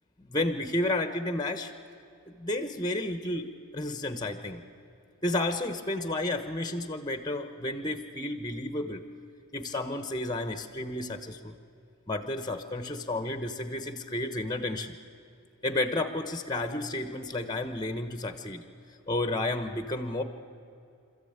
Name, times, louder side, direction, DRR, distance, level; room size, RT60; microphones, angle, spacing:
voice 1, 0.2-1.7 2.3-4.6 5.2-9.0 9.5-11.5 12.1-14.9 15.6-18.6 19.1-20.2, left 2 dB, 20° left, 9 dB, 1.1 m, -31 dB
26.5 x 14.0 x 9.0 m, 2.5 s
head